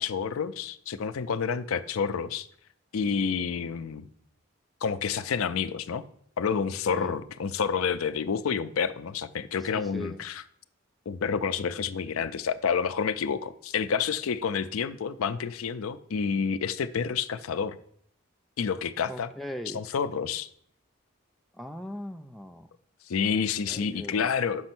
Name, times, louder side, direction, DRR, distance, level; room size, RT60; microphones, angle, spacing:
voice 1, 0.0-2.5 2.9-4.0 4.8-6.0 6.4-10.4 11.1-17.8 18.6-19.3 19.7-20.5 23.1-24.7, left 6 dB, 85° left, 13 dB, 0.5 m, -29 dB
voice 2, 9.6-10.2 19.1-19.8 21.5-22.7 23.4-24.3, left 1 dB, ahead, 4 dB, 0.3 m, -40 dB
6.2 x 5.4 x 5.9 m, 0.66 s
head